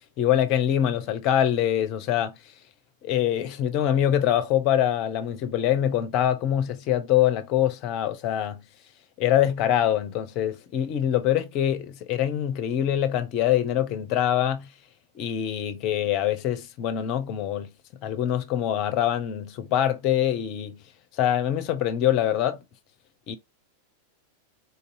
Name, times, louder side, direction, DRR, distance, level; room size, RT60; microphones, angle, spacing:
voice 1, 0.2-2.4 3.0-8.6 9.2-14.7 15.2-17.7 18.0-20.8 21.2-22.6 23.3-23.4, left 11 dB, 40° left, 0.6 m, -24 dB
4.1 x 2.7 x 2.6 m
figure-of-eight pair, 90°, 0 cm